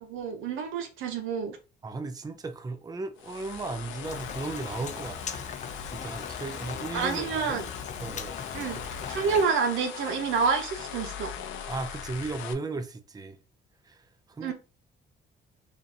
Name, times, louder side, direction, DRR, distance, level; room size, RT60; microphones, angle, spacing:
voice 1, 0.0-1.6 6.9-7.7 8.5-8.8 9.1-11.3 14.4-14.5, right 5 dB, 85° right, 0.9 m, -28 dB
voice 2, 1.8-5.5 5.9-7.6 8.0-8.4 11.7-13.4 13.8-14.5, right 3 dB, 20° right, 0.6 m, -36 dB
sound 1, 3.2-12.5, left 8 dB, 80° left, 0.6 m, -40 dB
Rain, 4.0-9.4, left 6 dB, 35° left, 0.5 m, -40 dB
4.9 x 2.7 x 2.8 m
cardioid pair, 90°, 20 cm